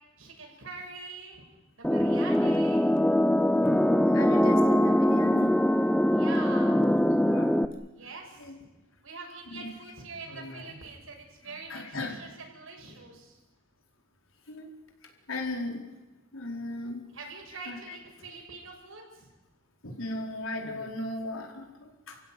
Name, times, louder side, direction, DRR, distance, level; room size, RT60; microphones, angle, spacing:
voice 1, 0.2-1.4 1.8-2.8 6.1-6.8 7.9-8.6 9.0-13.4 17.1-19.3, right 3 dB, 80° right, 1 dB, 7.0 m, -44 dB
sound 1, 1.8-7.7, left 1 dB, 5° left, 0.7 m, -23 dB
voice 2, 4.1-5.6 6.9-7.0 7.3-7.5 8.4-8.5 9.4-9.8 10.2-10.8 11.4-12.2 14.5-14.7 15.3-15.8 16.3-17.0 17.5-18.0 19.8-22.2, left 2 dB, 85° left, 2 dB, 4.6 m, -37 dB
29.5 x 16.0 x 9.4 m, 1.1 s
head